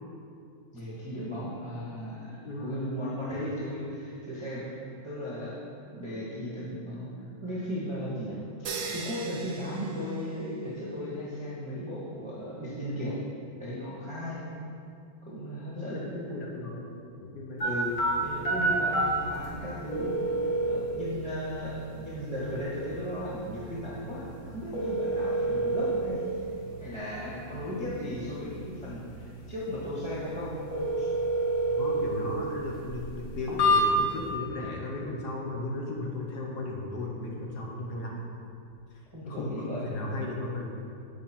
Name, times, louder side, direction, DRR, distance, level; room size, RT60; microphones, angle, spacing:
voice 1, 0.7-4.8 5.0-5.5 5.9-7.1 7.4-13.2 13.6-14.4 15.2-16.0 17.6-17.9 18.2-20.1 20.6-26.2 26.8-30.6 31.0-31.1 39.1-39.8 40.2-40.3, equal, 20° right, -8 dB, 0.9 m, -36 dB
voice 2, 2.4-2.8 3.3-3.5 15.7-16.8 17.2-17.7 18.7-18.9 31.8-38.2 39.2-40.7, left 2 dB, 65° left, -1 dB, 1.2 m, -35 dB
sound 1, 8.6-10.8, right 4 dB, 65° right, 0.9 m, -39 dB
sound 2, 17.6-34.3, right 1 dB, 45° left, 1.5 m, -30 dB
7.8 x 5.1 x 4.3 m, 2.5 s
omnidirectional pair, 2.1 m